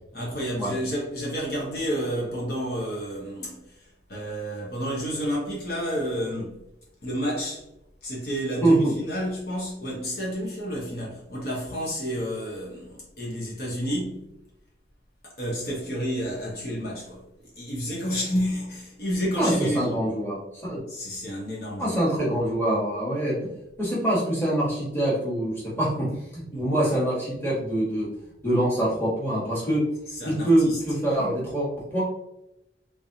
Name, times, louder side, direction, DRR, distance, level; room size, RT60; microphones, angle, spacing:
voice 1, 0.1-6.6 7.0-7.6 8.0-14.3 15.2-20.0 20.9-22.0 26.5-26.6 30.1-30.8 31.2-31.3, equal, 55° left, 1.1 m, -30 dB
voice 2, 8.6-8.9 19.4-20.4 20.6-20.8 21.8-23.3 23.8-28.1 28.4-29.8 30.2-32.0, right 1 dB, 10° left, 1.4 m, -24 dB
3.6 x 3.4 x 2.7 m
head